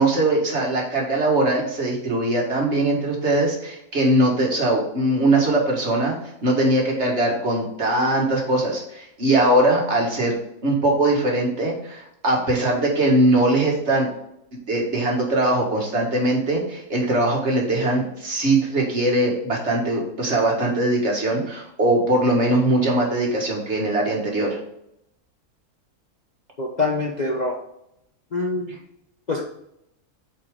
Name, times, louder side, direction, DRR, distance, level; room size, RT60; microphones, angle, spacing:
voice 1, 0.0-6.1 6.4-14.1 14.7-24.6, right 1 dB, 45° right, -1 dB, 1.9 m, -21 dB
voice 2, 26.6-27.6 28.3-28.8 29.3-29.4, left 3 dB, 35° left, -2 dB, 0.7 m, -24 dB
8.1 x 4.5 x 3.6 m, 0.78 s
omnidirectional pair, 1.6 m